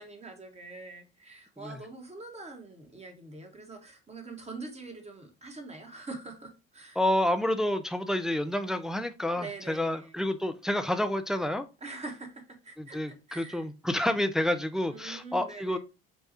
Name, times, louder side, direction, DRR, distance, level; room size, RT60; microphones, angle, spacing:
voice 1, 0.0-7.0 9.4-10.2 11.8-13.0 13.3-13.7 14.9-15.8, right 3 dB, 20° right, 1.1 m, -44 dB
voice 2, 7.0-11.6 12.8-15.8, left 1 dB, ahead, 0.3 m, -29 dB
5.5 x 2.3 x 2.8 m
hypercardioid pair, 60°, 30 cm